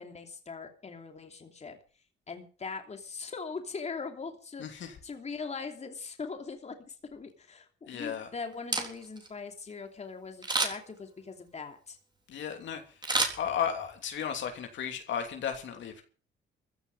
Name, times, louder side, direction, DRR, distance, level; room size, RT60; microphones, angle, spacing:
voice 1, 0.0-1.8 2.3-12.0, left 4 dB, 35° left, 2.9 m, -41 dB
voice 2, 4.6-5.0 7.9-8.3 12.3-12.8 13.4-16.0, left 8 dB, 70° left, 3.0 m, -34 dB
Camera, 8.5-9.3 10.4-11.0 13.0-14.0 14.4-14.5, right 2 dB, 20° right, 3.8 m, -30 dB
15.0 x 6.8 x 9.7 m
cardioid pair, 90°, 20 cm